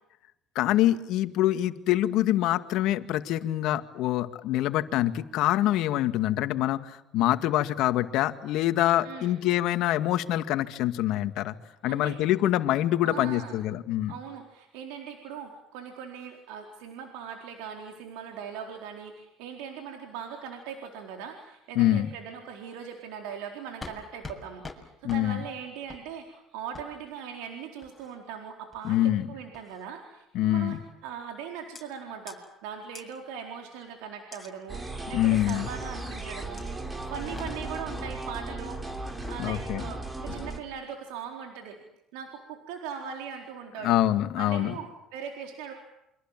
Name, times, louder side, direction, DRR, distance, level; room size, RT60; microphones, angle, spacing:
voice 1, 0.6-11.5 11.8-14.1 21.8-22.1 25.0-25.4 28.8-29.3 30.3-30.8 35.1-35.7 39.4-39.8 43.8-44.7, left 13 dB, 70° left, 9 dB, 2.1 m, -25 dB
voice 2, 9.0-9.4 11.9-12.2 13.0-13.6 14.1-30.8 31.0-38.8 39.3-41.8 42.1-44.0 44.4-45.7, right 7 dB, 80° right, 3 dB, 4.2 m, -40 dB
Impacts Scrapes Falling Box Of Stuff, 23.8-24.0 24.2-24.4 24.6-24.8 25.1-25.2 25.9-26.0 26.7-26.9 27.8-28.2 28.7-29.1 29.5-29.8 30.7-30.9 31.8-31.9 32.3-32.4 33.0-33.1 34.3-34.5 35.5-35.6 36.6-36.7 37.1-37.9 39.0-39.4, left 3 dB, 15° left, 7.3 m, -44 dB
sound 1, 34.7-40.6, right 2 dB, 20° right, 4.8 m, -36 dB
28.5 x 25.5 x 7.6 m, 0.86 s
supercardioid pair, 80°, 0 cm